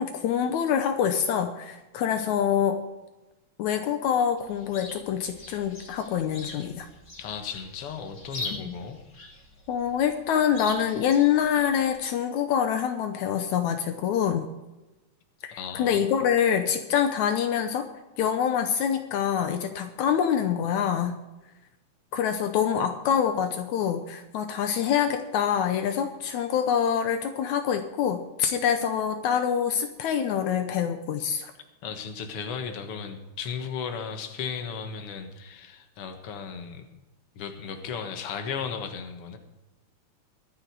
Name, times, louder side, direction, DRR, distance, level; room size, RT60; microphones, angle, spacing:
voice 1, 0.0-2.8 3.6-6.9 8.5-8.7 9.7-14.5 15.4-17.9 18.2-21.2 22.1-31.5, left 8 dB, 80° left, 7 dB, 2.2 m, -25 dB
Chirp tweet, 4.4-12.0, left 2 dB, 30° left, 2.3 m, -42 dB
voice 2, 7.2-9.0 15.6-16.1 31.8-36.8 37.4-39.4, left 6 dB, 55° left, 6 dB, 2.2 m, -35 dB
23.0 x 7.7 x 4.7 m, 1.1 s
omnidirectional pair, 3.4 m